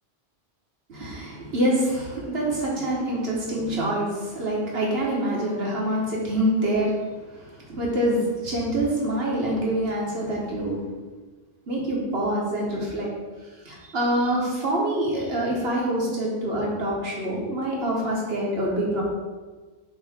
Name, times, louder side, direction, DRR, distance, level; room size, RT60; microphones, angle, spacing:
voice 1, 0.9-7.0 7.4-10.8 11.7-13.1 13.6-19.0, right 1 dB, 65° right, -3 dB, 1.7 m, -26 dB
7.5 x 3.2 x 4.4 m, 1.3 s
omnidirectional pair, 1.1 m